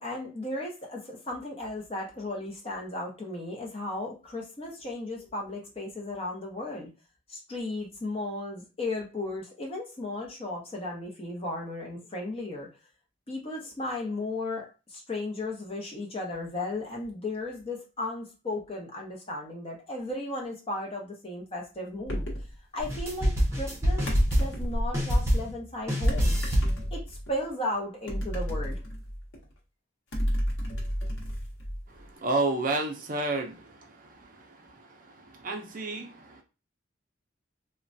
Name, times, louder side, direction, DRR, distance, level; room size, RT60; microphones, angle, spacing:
voice 1, 0.0-6.9 7.3-12.7 13.3-22.3 22.7-24.1 24.4-26.4 26.9-28.8, left 2 dB, 30° left, -1 dB, 0.7 m, -35 dB
sound 1, 22.1-22.5 24.1-25.0 26.1-27.3 28.1-29.4 30.1-32.0, equal, 70° left, 0.8 m, -31 dB
sound 2, 22.8-24.7 24.9-25.6 25.9-26.8, equal, 15° right, 0.8 m, -26 dB
voice 2, 32.2-33.6 35.4-36.1, right 2 dB, 40° right, 3 dB, 0.4 m, -28 dB
3.0 x 2.1 x 2.6 m, 0.30 s
head